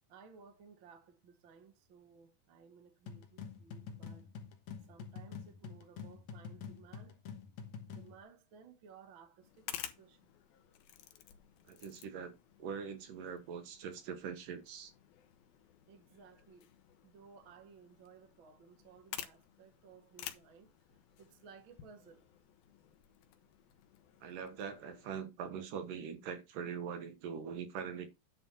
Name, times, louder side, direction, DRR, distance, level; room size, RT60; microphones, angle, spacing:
voice 1, 0.1-4.3 4.9-7.2 7.9-10.3 15.2-15.3 15.9-16.7 17.0-22.2, right 6 dB, 45° right, 1.7 m, -59 dB
sound 1, 3.1-8.2, left 6 dB, 60° left, 2.3 m, -47 dB
sound 2, 9.4-25.2, left 11 dB, 90° left, 2.9 m, -52 dB
voice 2, 11.7-12.3 12.6-14.9 24.2-28.1, right 7 dB, 70° right, 3.0 m, -42 dB
10.0 x 4.4 x 5.7 m
omnidirectional pair, 4.0 m